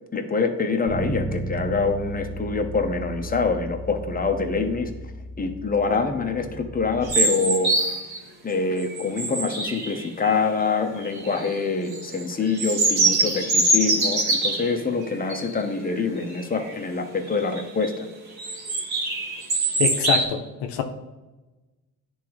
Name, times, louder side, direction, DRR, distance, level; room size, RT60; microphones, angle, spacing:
voice 1, 0.1-4.9 5.4-8.0 8.4-18.1, left 4 dB, 20° left, 5 dB, 0.9 m, -25 dB
Bass guitar, 0.9-7.1, right 1 dB, 20° right, 1.9 m, -35 dB
sound 1, 7.1-8.2 8.7-10.3 11.0-11.5 11.9-14.8 15.3-15.5 15.9-16.0 16.4-16.7 17.3-17.9 18.4-20.2, right 2 dB, 60° right, 1.6 m, -23 dB
voice 2, 19.8-20.8, left 7 dB, 75° left, 5 dB, 0.7 m, -25 dB
10.0 x 3.6 x 3.1 m, 1.1 s
supercardioid pair, 60°, 41 cm